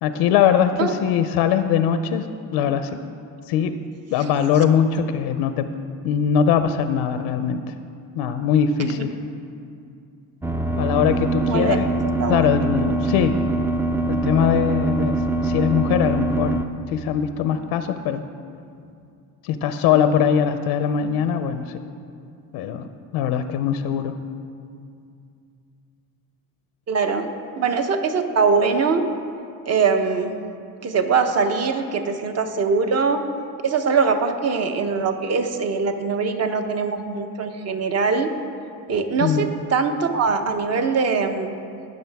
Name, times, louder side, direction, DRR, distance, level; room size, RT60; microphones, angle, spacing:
voice 1, 0.0-3.0 3.5-3.8 4.1-5.7 6.0-7.6 8.2-9.2 10.8-11.9 12.3-13.4 14.1-15.2 15.4-16.6 16.9-18.2 19.4-21.8 22.5-24.2 39.2-39.5, left 8 dB, 80° left, 10 dB, 0.6 m, -21 dB
sound 1, 10.4-16.7, right 2 dB, 5° right, 0.3 m, -23 dB
voice 2, 11.4-11.8 12.2-12.5 26.9-27.3 27.6-29.0 29.7-30.3 30.8-33.2 33.6-38.3 38.9-41.5, right 5 dB, 40° right, 6 dB, 1.0 m, -22 dB
19.0 x 6.6 x 3.5 m, 2.4 s
cardioid pair, 105°, 38 cm